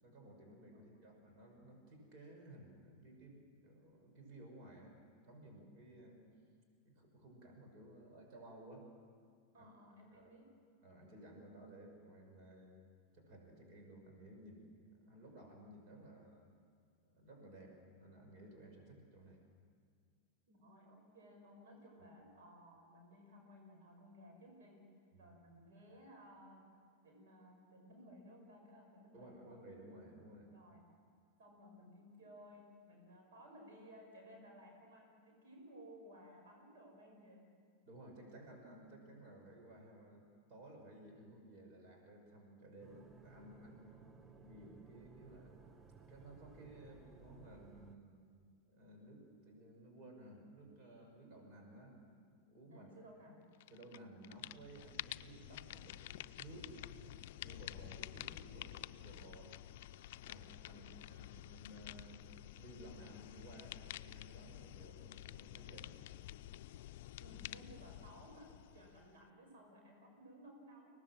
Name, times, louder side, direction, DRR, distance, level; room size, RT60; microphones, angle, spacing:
voice 1, 0.0-6.2 6.8-8.9 9.5-9.7 10.1-10.3 10.8-12.8 13.1-16.5 17.0-19.4 25.1-25.3 29.1-30.5 37.8-44.0 44.3-45.6 46.1-48.2 48.7-52.9 53.3-53.4 53.7-56.9 57.3-59.6 60.2-62.3 62.5-65.9, right 1 dB, 50° right, 2 dB, 6.1 m, -57 dB
voice 2, 9.5-10.5 20.5-24.9 25.2-26.7 27.0-29.6 30.5-30.8 31.4-37.5 52.7-53.4 60.7-61.1 67.2-70.9, equal, 80° right, 1 dB, 5.7 m, -58 dB
sound 1, 42.8-48.0, right 4 dB, 15° right, 0.8 m, -59 dB
sound 2, 53.6-54.0 54.2-69.3, left 14 dB, 65° left, 0.5 m, -50 dB
23.5 x 18.5 x 7.7 m, 2.1 s
hypercardioid pair, 125°, 0 cm